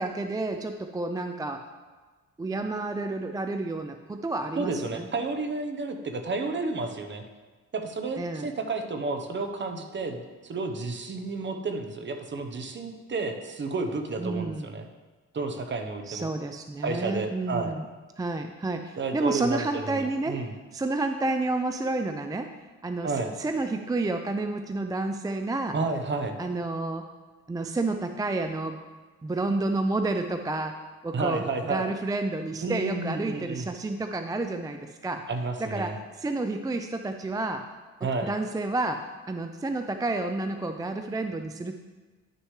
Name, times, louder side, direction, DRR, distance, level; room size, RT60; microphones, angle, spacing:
voice 1, 0.0-1.7 2.4-5.1 8.2-8.5 14.2-14.7 16.1-17.9 18.2-20.4 20.7-22.5 22.8-25.8 26.4-27.1 27.5-28.8 29.2-35.2 35.6-37.7 38.0-41.8, right 2 dB, 15° right, 6 dB, 0.4 m, -30 dB
voice 2, 4.5-7.2 7.7-14.8 15.3-16.3 16.8-17.7 19.0-20.5 23.0-23.3 25.7-26.4 31.1-31.9 32.6-33.7 35.3-36.0 38.0-38.3, right 3 dB, 40° right, 6 dB, 1.0 m, -31 dB
11.0 x 6.3 x 3.3 m, 1.3 s
cardioid pair, 90°, 30 cm